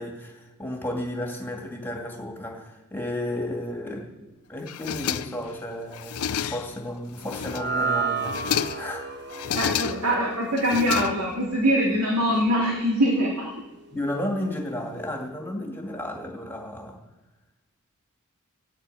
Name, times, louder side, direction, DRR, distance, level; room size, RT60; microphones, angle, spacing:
voice 1, 0.0-4.1 4.5-8.3 8.7-9.1 13.9-17.0, left 1 dB, 10° left, 0 dB, 2.4 m, -33 dB
sound 1, 4.7-5.6 5.9-6.8 7.2-7.8 8.2-8.9 9.3-10.2 10.6-11.5, left 8 dB, 80° left, 0.5 m, -30 dB
sound 2, 7.3-13.7, right 4 dB, 50° right, 1.1 m, -33 dB
voice 2, 9.5-13.5, equal, 70° right, -1 dB, 2.6 m, -23 dB
16.0 x 9.1 x 9.1 m, 1.1 s
head